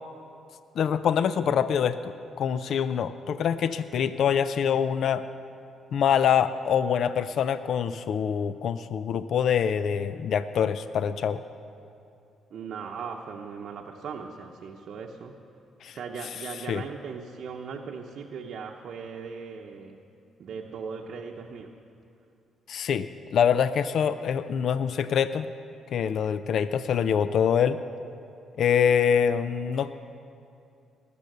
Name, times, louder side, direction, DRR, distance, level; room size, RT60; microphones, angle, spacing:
voice 1, 0.8-5.2 5.9-11.4 15.8-16.0 16.7-16.8 22.7-23.1 23.3-25.5 25.9-27.8 28.6-29.9, left 8 dB, 65° left, 13 dB, 0.4 m, -25 dB
voice 2, 12.5-15.4 15.9-20.0 20.4-21.7, right 5 dB, 65° right, 1 dB, 0.8 m, -38 dB
20.0 x 7.0 x 6.6 m, 2.6 s
cardioid pair, 90°, 0 cm